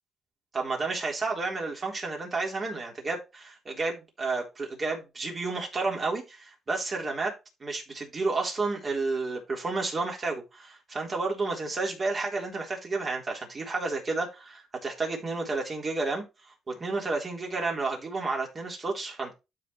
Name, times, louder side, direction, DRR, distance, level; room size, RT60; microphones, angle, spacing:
voice 1, 0.5-16.2 16.7-19.3, right 3 dB, 35° right, 3.8 m, -31 dB
12.5 x 4.6 x 3.2 m
cardioid pair, 90°, 0 cm